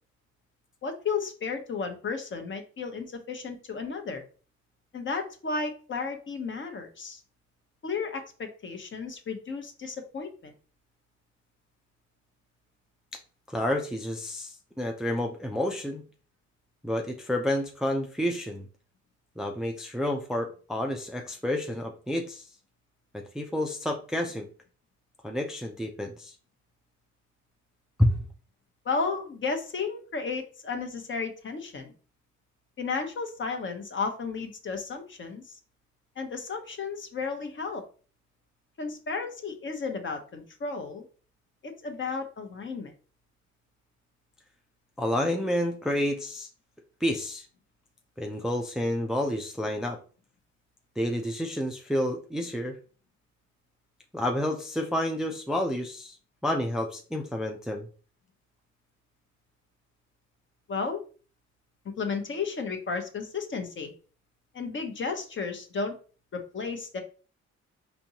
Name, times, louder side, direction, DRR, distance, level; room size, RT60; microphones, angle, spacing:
voice 1, 0.8-4.2 4.9-7.2 7.8-10.5 28.8-31.9 32.8-35.4 36.2-37.8 38.8-41.0 41.6-42.9 60.7-61.0 61.8-63.9 64.5-65.9 66.3-67.0, left 4 dB, 40° left, 5 dB, 0.8 m, -33 dB
voice 2, 13.5-16.0 16.8-18.7 19.4-22.5 23.1-24.5 25.2-26.3 28.0-28.2 45.0-46.5 47.0-47.4 48.2-50.0 51.0-52.8 54.1-56.2 56.4-57.9, left 1 dB, ahead, 2 dB, 0.4 m, -29 dB
4.3 x 2.7 x 2.8 m, 0.38 s
cardioid pair, 90°, 30 cm